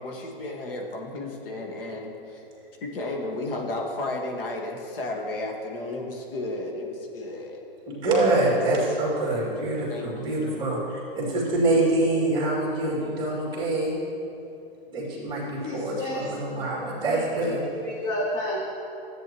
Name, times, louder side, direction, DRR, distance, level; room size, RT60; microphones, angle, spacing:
voice 1, 0.0-2.5 2.8-7.6 9.9-10.4, left 2 dB, 65° left, 1 dB, 1.7 m, -33 dB
voice 2, 7.9-13.9 14.9-17.6, right 2 dB, 15° right, -5 dB, 2.4 m, -25 dB
voice 3, 15.6-16.3 16.8-18.6, left 1 dB, 15° left, -2 dB, 0.7 m, -31 dB
14.0 x 8.8 x 3.0 m, 2.8 s
hypercardioid pair, 155°, 30 cm